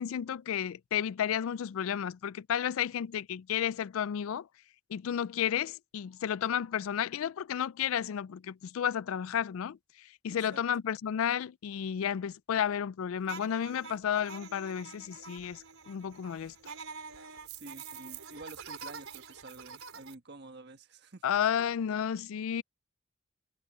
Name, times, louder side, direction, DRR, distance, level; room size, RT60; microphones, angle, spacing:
voice 1, 0.0-4.5 4.9-16.5 21.2-22.6, left 9 dB, 75° left, 0.3 m, -32 dB
voice 2, 10.3-10.6 17.5-21.2, right 2 dB, 50° right, 1.4 m, -49 dB
sound 1, 13.2-20.1, right 5 dB, 80° right, 4.5 m, -46 dB
head